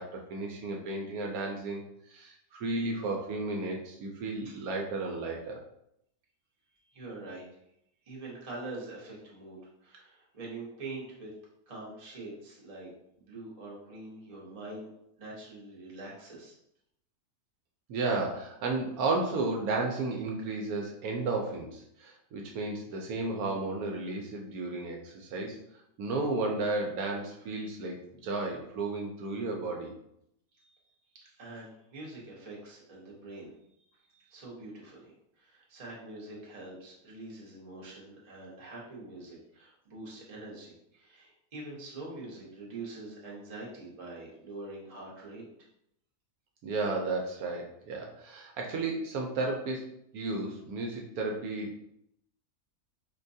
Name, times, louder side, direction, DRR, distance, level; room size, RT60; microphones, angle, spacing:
voice 1, 0.0-1.8 2.1-5.6 17.9-25.6 26.0-29.9 46.6-49.9 50.1-51.8, right 3 dB, 75° right, 0 dB, 1.0 m, -33 dB
voice 2, 6.9-7.6 8.0-11.4 11.7-12.9 13.2-14.9 15.2-16.6 30.5-30.9 31.1-33.6 33.9-45.4, right 2 dB, 30° right, -5 dB, 0.8 m, -44 dB
4.6 x 2.2 x 2.6 m, 0.77 s
omnidirectional pair, 1.6 m